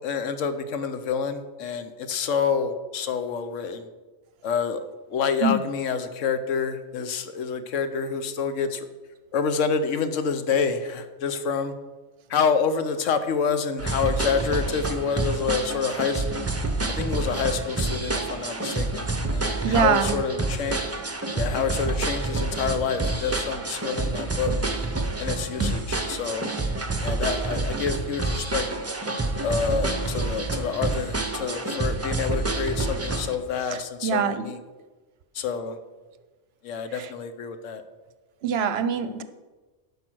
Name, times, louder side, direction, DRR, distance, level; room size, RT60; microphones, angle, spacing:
voice 1, 0.0-3.9 4.4-8.9 9.3-11.7 12.3-16.2 16.9-20.8 21.3-24.5 25.2-26.5 27.0-28.7 29.4-34.6 35.3-35.8 36.6-37.8, left 6 dB, 90° left, 10 dB, 1.1 m, -27 dB
sound 1, 13.8-33.4, right 2 dB, 15° right, 0.6 m, -28 dB
voice 2, 19.6-20.2 25.6-25.7 33.7-34.4 36.9-37.1 38.4-39.2, right 6 dB, 60° right, 11 dB, 0.8 m, -24 dB
10.5 x 5.3 x 6.2 m, 1.3 s
omnidirectional pair, 1.3 m